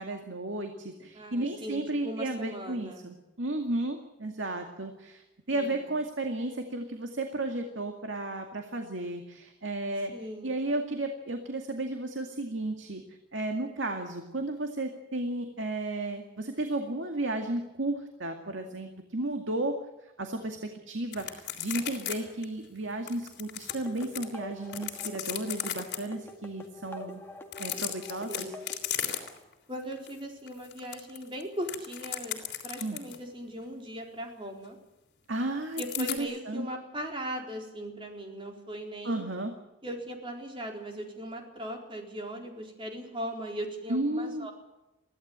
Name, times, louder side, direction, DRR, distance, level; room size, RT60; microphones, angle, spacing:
voice 1, 0.0-27.2 27.6-28.5 32.8-33.0 35.3-36.7 39.0-39.5 43.9-44.5, right 2 dB, 80° right, 4 dB, 2.1 m, -33 dB
voice 2, 1.1-3.0 5.5-5.8 10.1-10.6 28.3-28.7 29.7-34.8 35.8-39.2 39.8-44.5, equal, 25° right, 2 dB, 4.1 m, -39 dB
sound 1, 21.1-22.2 22.4-22.5 23.1-24.2 24.7-26.0 27.4-29.5 29.9-30.1 30.5-33.2 35.8-36.2, left 11 dB, 60° left, 3.4 m, -35 dB
sound 2, 23.7-28.9, left 1 dB, 10° left, 2.0 m, -46 dB
23.5 x 16.0 x 8.8 m, 0.99 s
head